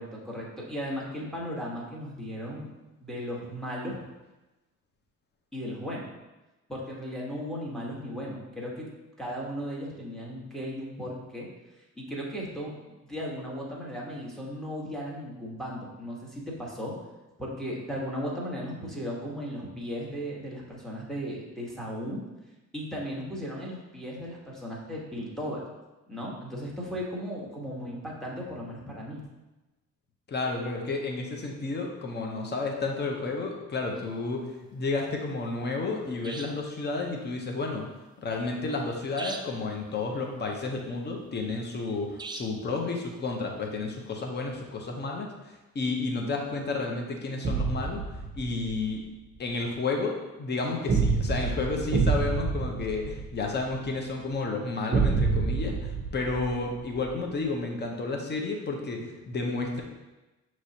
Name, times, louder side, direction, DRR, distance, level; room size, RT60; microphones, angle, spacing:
voice 1, 0.0-2.7 3.0-4.0 5.5-6.1 6.7-8.9 9.2-11.5 12.0-16.9 17.4-22.2 22.7-25.6 26.1-29.2, equal, ahead, -4 dB, 1.2 m, -36 dB
voice 2, 30.3-34.4 34.7-37.9 38.2-48.0 48.4-49.0 49.4-59.8, left 3 dB, 35° left, 1 dB, 0.8 m, -31 dB
sound 1, 34.0-34.1 36.2-36.7 39.2-39.7 42.2-42.7, right 3 dB, 15° right, 0.3 m, -40 dB
sound 2, 47.4-48.8 50.9-53.8 54.9-57.1, right 4 dB, 35° right, 0.7 m, -27 dB
6.0 x 3.1 x 2.8 m, 1.1 s
cardioid pair, 90°, 30 cm